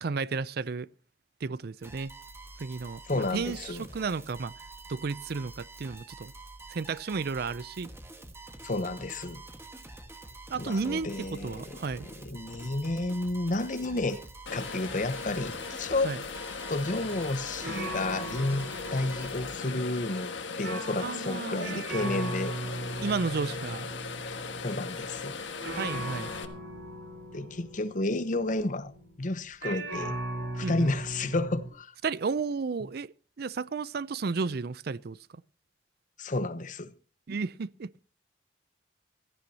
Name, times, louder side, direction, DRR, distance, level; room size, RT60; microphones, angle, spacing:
voice 1, 0.0-0.9 1.4-2.1 2.6-3.0 3.3-4.5 4.9-6.3 6.7-7.9 10.5-12.1 16.0-16.2 21.0-21.8 23.0-23.9 25.8-26.3 30.6-30.9 32.0-35.4 37.3-37.9, right 4 dB, 55° right, 0.5 m, -33 dB
sound 1, 1.8-19.6, right 2 dB, 15° right, 1.5 m, -47 dB
voice 2, 3.1-3.8 8.6-9.4 10.6-11.8 12.2-14.2 14.5-16.1 16.7-20.3 20.6-22.5 24.6-25.3 27.3-28.9 29.2-30.2 30.5-31.9 36.2-36.9, left 2 dB, 45° left, 0.9 m, -31 dB
sound 2, 14.5-26.5, left 5 dB, 85° left, 1.5 m, -38 dB
sound 3, 17.0-17.3 17.6-29.2 29.6-31.7, right 1 dB, 75° right, 4.2 m, -39 dB
16.5 x 14.5 x 2.8 m
head